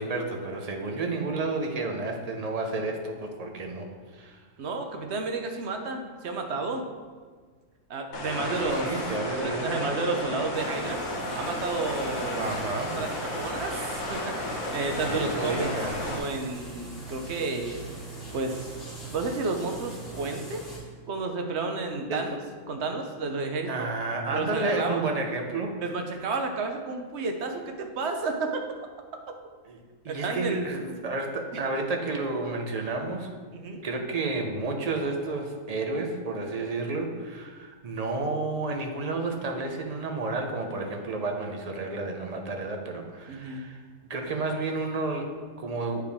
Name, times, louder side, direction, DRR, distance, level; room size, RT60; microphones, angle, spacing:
voice 1, 0.0-3.9 4.1-4.4 8.4-9.9 12.4-12.9 15.0-16.0 22.1-22.3 23.7-25.8 29.7-29.8 30.0-33.4 33.8-43.8 44.1-46.0, right 3 dB, 40° right, 3 dB, 0.6 m, -31 dB
voice 2, 4.6-6.9 7.9-8.9 9.3-11.0 11.3-12.5 13.0-15.7 16.0-17.8 18.3-18.7 19.1-20.7 21.1-22.4 22.7-23.9 24.3-25.0 25.8-28.6 30.1-30.7 33.5-33.9 43.3-43.6, right 3 dB, 55° right, 4 dB, 0.9 m, -31 dB
sound 1, 8.1-16.2, left 1 dB, 75° left, 1.5 m, -33 dB
sound 2, 10.5-20.8, right 2 dB, 45° left, 2.5 m, -42 dB
8.7 x 4.7 x 3.5 m, 1.5 s
omnidirectional pair, 1.5 m